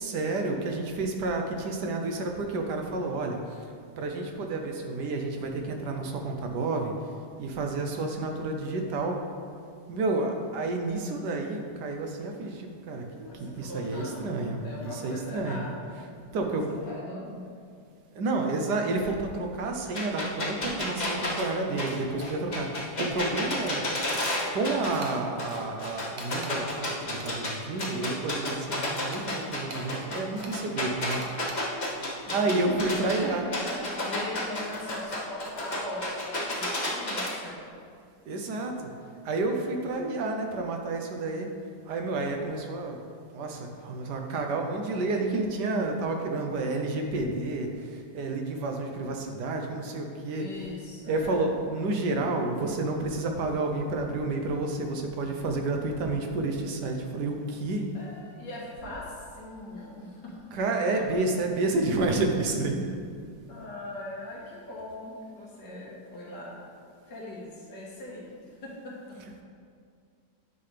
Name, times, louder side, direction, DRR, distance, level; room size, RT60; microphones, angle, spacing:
voice 1, 0.0-3.7 4.0-6.9 7.4-9.2 9.9-15.6 16.3-16.6 18.1-23.9 24.5-31.2 32.3-33.4 38.3-38.9 39.2-41.5 41.9-43.0 43.3-50.5 51.1-57.9 60.5-62.8, right 2 dB, 75° right, 3 dB, 1.4 m, -30 dB
voice 2, 13.3-16.6 16.9-17.5 32.2-37.6 50.3-51.5 57.9-60.5 61.0-61.1 63.5-66.6 67.1-69.2, left 1 dB, 80° left, -5 dB, 2.3 m, -40 dB
sound 1, 19.9-25.1 25.4-27.5 27.8-33.1 33.5-37.3, left 1 dB, 30° left, 1.1 m, -31 dB
sound 2, 24.5-24.6 25.0-25.2 26.2-26.6 27.2-28.2 29.1-29.9 30.4-30.6 31.2-31.6, right 3 dB, 55° right, 1.2 m, -44 dB
9.7 x 5.8 x 3.3 m, 2.2 s
omnidirectional pair, 1.9 m